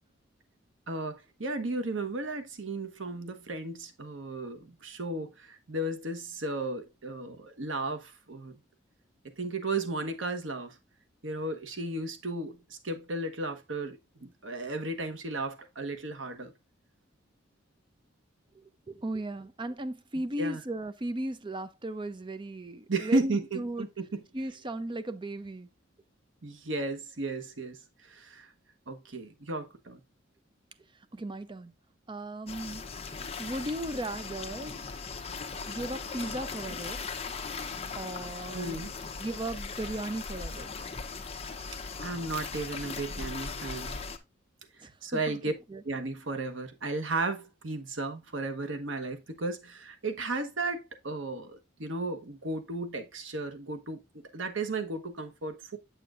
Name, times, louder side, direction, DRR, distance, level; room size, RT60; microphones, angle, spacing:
voice 1, 0.9-8.6 9.4-10.8 11.2-16.5 20.4-20.6 22.9-24.2 26.4-28.5 28.9-30.0 38.5-38.9 42.0-44.0 45.0-45.5 45.8-54.0 54.3-55.8, right 2 dB, 80° right, 1.2 m, -34 dB
voice 2, 18.5-23.9 24.3-25.7 31.1-31.7 32.1-32.8 33.4-34.8 35.6-37.0 38.0-38.8 39.2-40.7 44.8-45.4 45.7-45.8, right 1 dB, 25° right, 0.6 m, -36 dB
sound 1, 32.5-44.2, left 4 dB, 30° left, 0.8 m, -39 dB
7.5 x 6.9 x 2.5 m
head